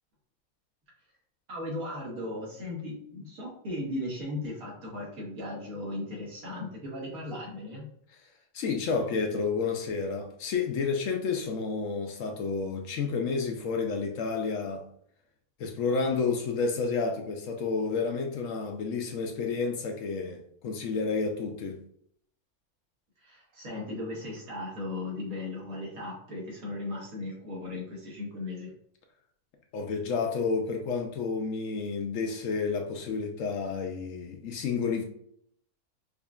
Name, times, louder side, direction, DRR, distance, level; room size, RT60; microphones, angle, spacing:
voice 1, 1.5-7.9 23.2-28.7, left 2 dB, 70° right, 1.8 m, -37 dB
voice 2, 8.5-14.9 15.6-21.8 29.7-35.0, left 4 dB, 70° left, 0.9 m, -30 dB
4.9 x 2.5 x 2.3 m
omnidirectional pair, 1.5 m